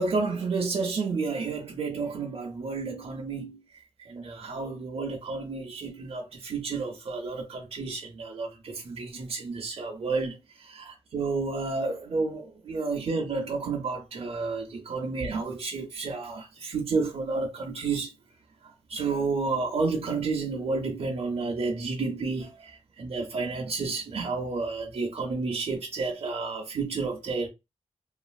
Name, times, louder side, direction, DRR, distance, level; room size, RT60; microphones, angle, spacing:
voice 1, 0.0-3.6 4.0-18.1 18.9-27.5, right 4 dB, 65° right, 0.5 m, -31 dB
2.9 x 2.4 x 2.3 m
wide cardioid pair, 115°, 11 cm